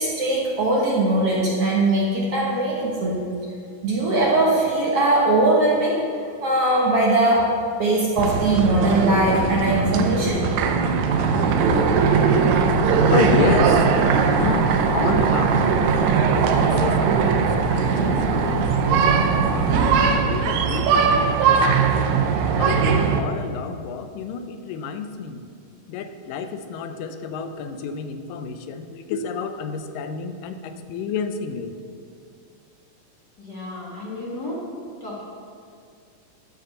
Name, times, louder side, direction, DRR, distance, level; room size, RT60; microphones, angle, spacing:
voice 1, 0.0-3.2 3.8-6.0 6.4-7.5 7.8-10.4, right 2 dB, 60° right, -4 dB, 1.8 m, -20 dB
sound 1, 8.2-23.2, right 5 dB, 80° right, 1.7 m, -20 dB
sound 2, 11.5-20.1, left 1 dB, 65° left, 3.4 m, -33 dB
voice 2, 13.1-13.9 14.3-15.7 16.4-22.1 22.6-25.5 25.9-31.7, left 5 dB, 85° left, 8 dB, 2.2 m, -29 dB
voice 3, 33.4-34.6 35.0-35.2, left 2 dB, 45° left, -5 dB, 1.3 m, -33 dB
12.0 x 5.1 x 6.6 m, 2.3 s
omnidirectional pair, 3.9 m